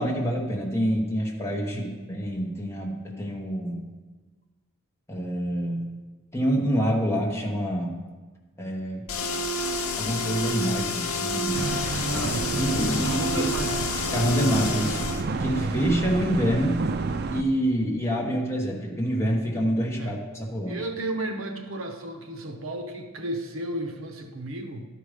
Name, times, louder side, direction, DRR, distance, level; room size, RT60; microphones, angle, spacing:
voice 1, 0.0-3.9 5.1-5.9 6.3-8.0 8.6-9.1 10.0-11.7 12.6-13.5 14.1-15.1 15.4-16.9 17.3-20.8, equal, 10° left, -2 dB, 1.1 m, -27 dB
sound 1, 9.1-15.2, left 2 dB, 75° left, 0.8 m, -29 dB
sound 2, 11.5-17.4, right 3 dB, 50° right, 0.4 m, -30 dB
voice 2, 12.0-13.9 20.0-20.2 20.7-24.9, right 1 dB, 70° right, 5 dB, 0.9 m, -34 dB
12.0 x 5.0 x 5.0 m, 1.3 s
head